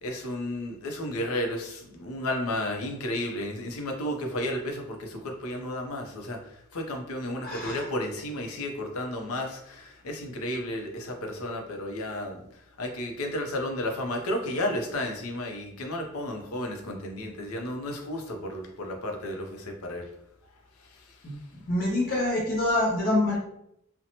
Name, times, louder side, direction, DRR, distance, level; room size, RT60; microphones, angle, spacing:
voice 1, 0.0-6.4 6.7-12.4 12.8-20.0, left 1 dB, 90° left, 3 dB, 0.5 m, -32 dB
voice 2, 7.4-7.8 21.2-21.3 21.7-23.4, left 1 dB, 40° left, -2 dB, 0.5 m, -26 dB
2.7 x 2.1 x 2.8 m, 0.76 s
head